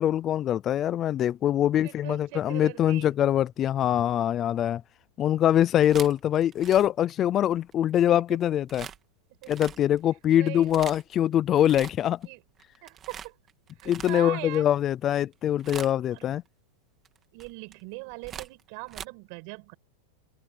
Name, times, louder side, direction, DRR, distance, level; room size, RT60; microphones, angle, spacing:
voice 1, 0.0-4.8 5.2-8.9 9.5-12.2 13.9-16.4, left 11 dB, 25° left, 0.5 m, -24 dB
voice 2, 1.8-3.2 8.3-8.4 9.4-9.5 10.4-10.9 12.2-12.4 12.8-13.3 13.8-14.7 16.1-16.3 17.3-19.8, right 32 dB, 50° right, 6.6 m, -40 dB
sound 1, 5.6-7.7 8.7-9.0 9.4-10.0 10.5-11.1 11.5-12.3 12.6-14.6 15.1-15.3 15.6-16.2 17.0-19.0, right 8 dB, 20° right, 2.3 m, -42 dB
open air
supercardioid pair, 155°, 0 cm